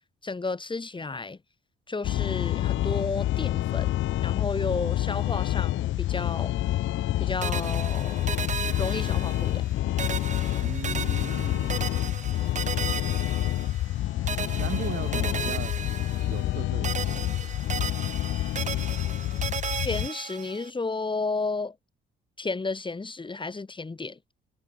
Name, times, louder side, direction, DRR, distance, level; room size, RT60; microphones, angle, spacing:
voice 1, 0.2-1.4 1.9-3.9 4.2-6.5 7.2-8.2 8.8-9.6 19.8-21.8 22.4-24.2, left 3 dB, 25° left, 5.6 m, -32 dB
sound 1, 2.0-20.1, left 14 dB, 75° left, 1.0 m, -28 dB
sound 2, 7.4-9.7 10.0-14.0 14.3-16.6 16.8-20.7, right 7 dB, 40° right, 1.0 m, -35 dB
voice 2, 10.6-11.7 14.6-15.7 16.3-17.6, right 9 dB, 60° right, 6.1 m, -38 dB
cardioid pair, 90°, 20 cm